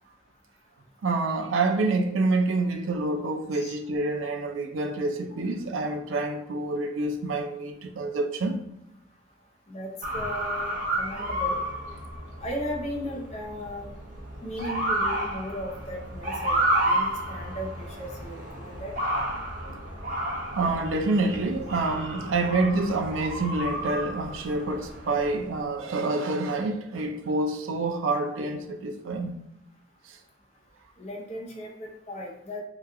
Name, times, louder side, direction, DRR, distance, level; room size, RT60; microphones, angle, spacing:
voice 1, 1.0-8.6 19.7-19.8 20.5-29.3 30.1-30.2, right 2 dB, 80° right, 0.5 m, -27 dB
voice 2, 9.7-11.6 12.4-13.9 14.4-16.6 16.8-18.9 31.0-32.6, equal, 35° left, 0.7 m, -36 dB
Motor vehicle (road) / Siren, 10.0-25.6, right 1 dB, 45° right, 0.7 m, -31 dB
2.9 x 2.3 x 3.5 m
head